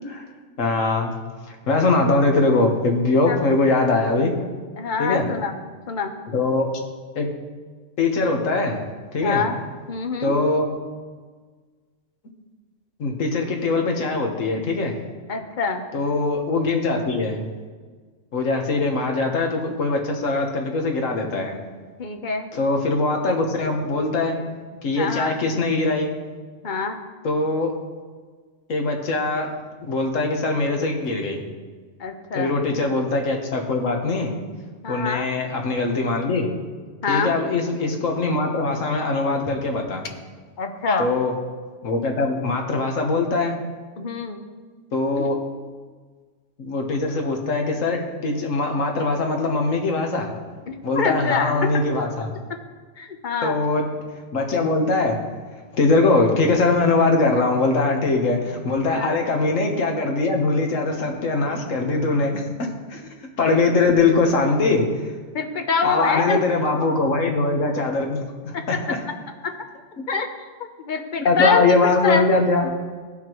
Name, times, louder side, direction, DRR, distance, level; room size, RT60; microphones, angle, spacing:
voice 1, 0.6-1.2 1.5-4.3 5.0-5.3 6.3-6.7 7.1-7.3 8.0-8.8 9.1-9.4 10.2-10.7 13.0-14.9 15.9-17.4 18.3-21.6 22.5-24.4 24.8-26.1 27.2-27.7 28.7-29.5 29.8-31.4 32.3-34.4 34.9-36.5 37.1-40.1 41.0-41.3 41.8-43.6 44.9-45.4 46.6-50.4 50.8-52.3 53.4-53.8 54.3-55.2 55.7-65.1 65.8-68.2 68.4-69.0 71.2-72.7, left 3 dB, 80° left, 3 dB, 1.6 m, -22 dB
voice 2, 4.8-5.5 5.9-6.1 9.2-9.5 9.9-10.3 15.3-15.8 22.0-22.5 24.9-25.3 26.6-27.0 32.0-32.5 34.8-35.3 37.0-37.3 40.6-41.1 44.0-44.4 45.2-45.3 50.7-51.5 53.0-53.5 58.9-59.2 65.3-66.4 68.5-68.8 69.4-69.5 70.1-70.3 70.8-72.2, left 5 dB, 45° left, 5 dB, 0.9 m, -25 dB
16.0 x 5.8 x 3.0 m, 1.5 s
omnidirectional pair, 1.3 m